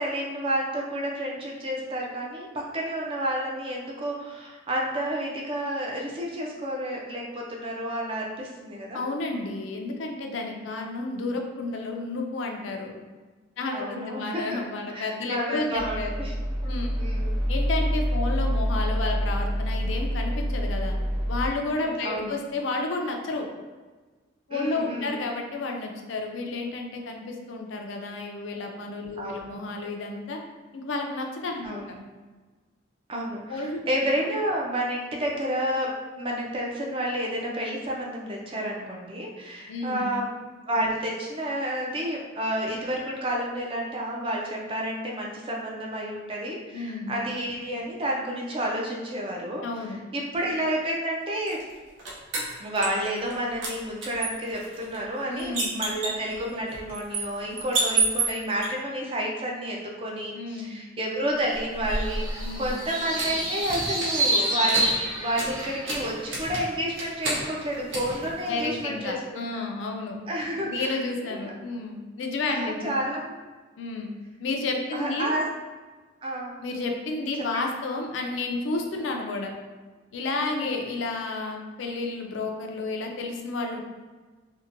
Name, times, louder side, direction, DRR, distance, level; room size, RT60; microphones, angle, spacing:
voice 1, 0.0-9.0 10.6-10.9 13.7-14.6 14.9-16.3 16.6-16.7 17.0-17.4 22.0-22.4 24.5-25.2 29.2-29.5 31.6-32.0 33.1-40.3 40.7-51.6 52.6-69.2 70.3-71.0 71.2-71.5 72.5-73.4 74.9-75.5 76.2-76.5 80.4-80.8, right 1 dB, 25° right, -2 dB, 0.4 m, -30 dB
voice 2, 8.9-12.9 13.6-16.1 16.6-16.9 17.5-21.0 21.3-23.5 24.5-30.4 30.7-31.8 33.5-33.8 39.7-40.1 46.7-47.2 49.6-50.0 55.3-55.8 60.3-60.8 62.4-62.8 68.5-70.2 70.6-72.9 73.8-74.1 74.4-75.3 76.6-79.5 80.1-83.8, left 3 dB, 70° left, 2 dB, 0.4 m, -31 dB
sound 1, 15.8-21.5, equal, 45° right, 1.1 m, -27 dB
sound 2, 51.5-53.3 53.6-58.7 61.5-69.0, right 3 dB, 70° right, 0.6 m, -32 dB
sound 3, 61.9-65.9, right 1 dB, 90° right, 1.3 m, -28 dB
2.7 x 2.1 x 2.5 m, 1.3 s
head